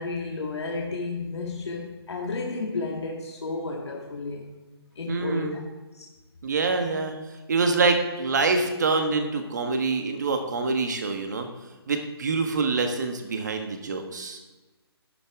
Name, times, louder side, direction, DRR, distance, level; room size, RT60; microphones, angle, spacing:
voice 1, 0.0-4.5 5.0-5.6 5.9-6.1, left 3 dB, 90° left, -1 dB, 1.8 m, -32 dB
voice 2, 5.1-5.6 6.4-7.1 7.5-11.5 11.9-14.4, right 4 dB, 45° right, 5 dB, 1.4 m, -25 dB
11.0 x 11.0 x 3.7 m, 1.2 s
hypercardioid pair, 180°, 14 cm